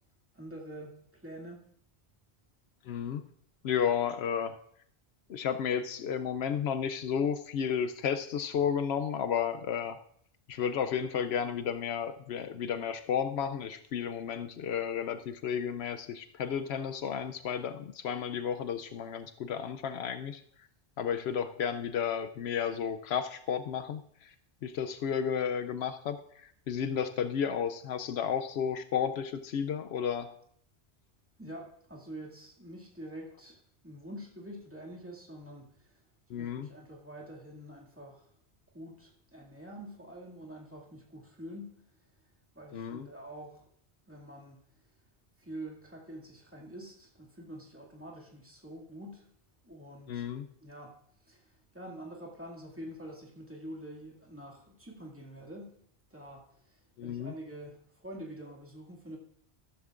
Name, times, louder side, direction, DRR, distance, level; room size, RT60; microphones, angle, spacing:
voice 1, 0.3-1.6 31.4-36.0 36.3-38.3 38.7-41.8 42.5-43.6 44.1-44.6 45.4-49.3 49.6-50.2 50.6-51.0 51.2-55.8 56.1-59.2, right 1 dB, 10° right, -2 dB, 2.2 m, -46 dB
voice 2, 2.8-3.2 3.6-4.5 5.3-10.0 10.5-20.4 21.0-24.3 24.6-30.3 36.3-36.7 42.7-43.1 50.1-50.5 57.0-57.3, left 8 dB, 80° left, 9 dB, 0.8 m, -32 dB
14.5 x 13.0 x 2.5 m, 0.65 s
omnidirectional pair, 1.1 m